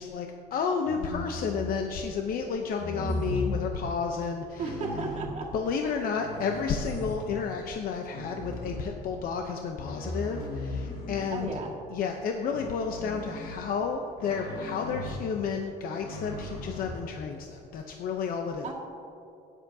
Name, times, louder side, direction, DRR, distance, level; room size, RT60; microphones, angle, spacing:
voice 1, 0.0-4.7 5.5-11.6 11.9-18.7, left 5 dB, 60° left, 4 dB, 0.7 m, -31 dB
sound 1, 0.8-1.9 2.8-3.7 4.6-5.3 6.0-7.4 8.1-9.2 9.8-11.7 12.5-13.6 14.2-15.3 15.9-16.9, left 2 dB, 90° left, 2.0 m, -36 dB
voice 2, 4.6-5.5 5.8-6.1 11.3-11.7 18.6-18.7, right 4 dB, 45° right, -1 dB, 1.8 m, -35 dB
12.5 x 10.0 x 2.7 m, 2.8 s
cardioid pair, 110°, 17 cm